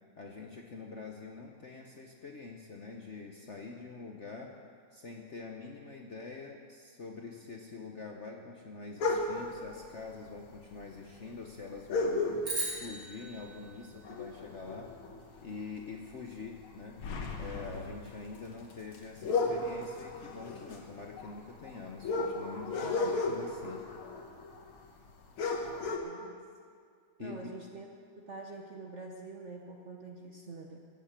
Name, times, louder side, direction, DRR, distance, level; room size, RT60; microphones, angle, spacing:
voice 1, 0.2-4.5 4.9-14.9 15.4-17.0 17.3-23.8 27.2-27.5, left 4 dB, 50° left, 1 dB, 0.9 m, -45 dB
sound 1, 9.0-9.6 10.6-10.7 10.9-11.0 11.9-12.8 13.2-13.5 13.8-15.4 15.8-16.0 16.4-24.8 25.1-25.2 25.4-26.0, left 3 dB, 75° left, 2.1 m, -34 dB
sound 2, 12.4-14.9, right 2 dB, 80° right, 4.2 m, -39 dB
voice 2, 22.8-23.3 25.8-26.4 27.2-27.9 28.1-30.8, right 3 dB, 50° right, 1 dB, 0.8 m, -46 dB
16.5 x 7.5 x 7.5 m, 2.1 s
omnidirectional pair, 2.3 m